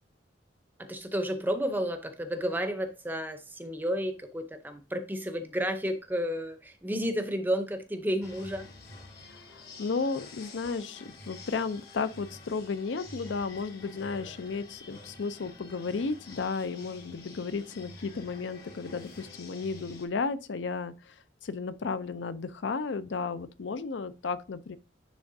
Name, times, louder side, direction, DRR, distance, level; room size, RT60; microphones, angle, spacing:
voice 1, 0.8-8.7, equal, 10° right, 0.6 m, -31 dB
sound 1, 8.2-20.1, left 3 dB, 55° left, 1.4 m, -49 dB
voice 2, 9.3-21.1 21.4-24.8, left 4 dB, 70° left, 0.5 m, -34 dB
10.5 x 3.4 x 2.6 m
head